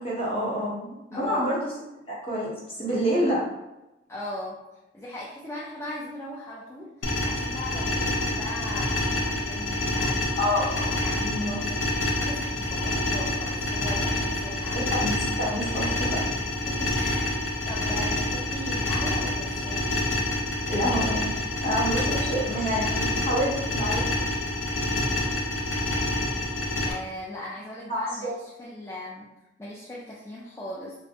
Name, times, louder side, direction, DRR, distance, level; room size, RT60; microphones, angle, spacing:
voice 1, 0.0-1.7 2.1-3.4 10.4-10.9 11.2-11.5 14.7-16.2 20.7-21.3 21.6-24.2 27.9-28.3, equal, 30° left, -7 dB, 0.8 m, -28 dB
voice 2, 1.1-1.5 4.1-4.5 4.9-10.2 10.9-14.8 15.8-15.9 16.7-20.1 26.8-29.3 29.6-30.9, left 1 dB, 15° left, -7 dB, 0.3 m, -39 dB
sound 1, 7.0-26.9, left 2 dB, 85° left, 0.5 m, -27 dB
2.5 x 2.0 x 2.7 m, 0.95 s
head